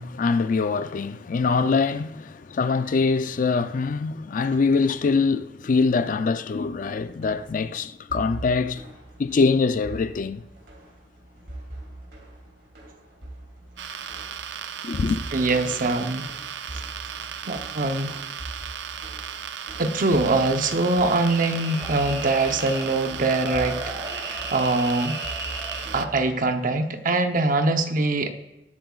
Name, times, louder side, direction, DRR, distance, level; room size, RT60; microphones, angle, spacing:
voice 1, 0.0-8.8 9.2-10.5 14.8-15.2, left 4 dB, 50° left, 0.4 m, -23 dB
sound 1, 6.6-26.5, right 1 dB, 70° right, 2.9 m, -42 dB
sound 2, 13.8-26.1, right 8 dB, 90° right, 0.5 m, -36 dB
voice 2, 15.3-16.3 17.5-18.3 19.8-25.2 25.9-28.3, right 2 dB, 50° right, 0.8 m, -23 dB
sound 3, 20.5-26.2, right 1 dB, 20° right, 2.3 m, -36 dB
20.0 x 7.7 x 2.4 m
head